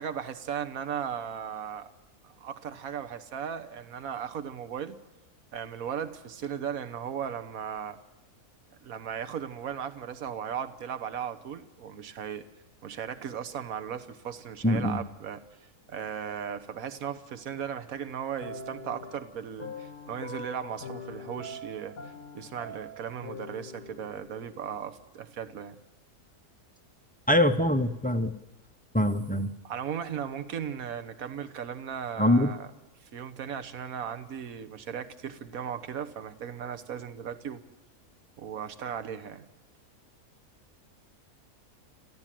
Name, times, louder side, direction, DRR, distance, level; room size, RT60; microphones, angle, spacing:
voice 1, 0.0-1.9 2.2-5.0 5.5-8.0 8.8-12.4 12.8-15.4 15.9-22.0 22.3-25.8 29.6-32.7 33.0-37.6 38.4-39.4, right 8 dB, 70° right, 9 dB, 1.5 m, -37 dB
voice 2, 14.6-15.0 27.3-28.3 28.9-29.5 32.2-32.5, left 1 dB, 10° left, 8 dB, 0.6 m, -23 dB
sound 1, 18.4-24.8, left 2 dB, 90° left, 2.0 m, -43 dB
26.5 x 15.0 x 7.6 m, 1.1 s
omnidirectional pair, 1.6 m